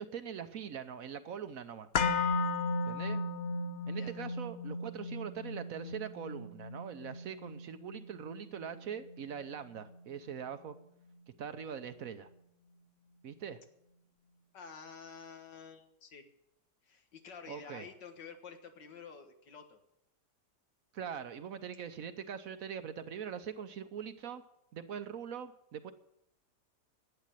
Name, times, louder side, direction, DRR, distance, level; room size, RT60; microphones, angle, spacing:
voice 1, 0.0-1.9 2.9-3.2 3.9-10.8 11.4-12.3 13.2-13.6 17.5-17.9 20.9-24.4 24.7-25.9, right 7 dB, 60° right, 10 dB, 1.1 m, -42 dB
sound 1, 1.9-10.0 10.3-10.4, left 3 dB, 50° left, 1.1 m, -36 dB
voice 2, 14.5-16.3 16.8-19.8, left 6 dB, 90° left, 6 dB, 2.2 m, -50 dB
11.5 x 8.9 x 8.9 m, 0.80 s
omnidirectional pair, 1.8 m